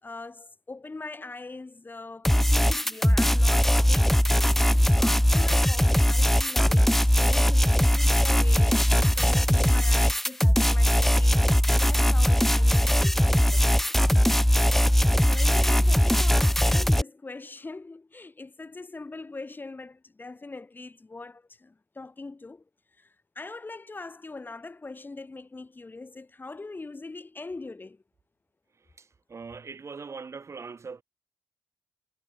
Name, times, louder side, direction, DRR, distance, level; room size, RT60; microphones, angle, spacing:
voice 1, 0.0-11.4 11.8-13.9 15.3-22.6 23.0-28.0, left 3 dB, 25° left, 4.5 m, -42 dB
sound 1, 2.2-17.0, equal, 5° left, 0.7 m, -20 dB
voice 2, 29.0-31.0, right 5 dB, 40° right, 4.7 m, -41 dB
hypercardioid pair, 45°, 8 cm